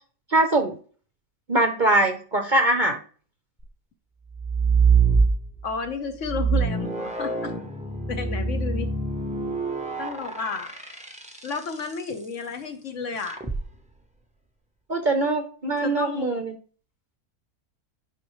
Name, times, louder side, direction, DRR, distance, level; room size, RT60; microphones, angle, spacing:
voice 1, 0.3-0.8 1.5-3.0 14.9-16.5, right 2 dB, 40° right, 5 dB, 0.7 m, -22 dB
sound 1, 4.3-5.8 6.2-11.7 13.3-13.6, right 5 dB, 5° right, 0.5 m, -24 dB
voice 2, 5.6-7.6 8.1-8.9 10.0-10.7 11.4-13.4 15.8-16.4, left 5 dB, 55° left, 7 dB, 1.1 m, -32 dB
10.0 x 5.1 x 3.1 m, 0.41 s
omnidirectional pair, 1.6 m